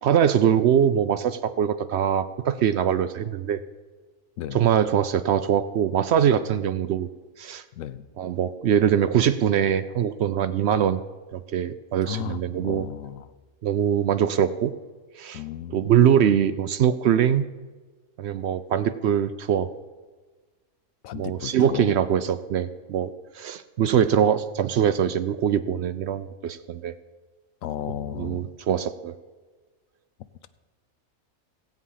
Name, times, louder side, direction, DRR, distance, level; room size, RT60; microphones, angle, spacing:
voice 1, 0.0-3.6 4.5-7.1 7.4-7.6 8.2-11.0 11.3-12.9 13.6-14.7 15.2-15.4 15.7-17.5 18.2-19.7 21.1-26.9 28.1-29.1, right 9 dB, 65° right, 12 dB, 0.7 m, -22 dB
voice 2, 4.4-4.7 7.8-8.0 12.0-13.3 15.3-15.9 21.0-21.9 27.6-28.5, left 11 dB, 85° left, 13 dB, 1.0 m, -34 dB
17.0 x 8.3 x 5.6 m, 1.3 s
omnidirectional pair, 1.4 m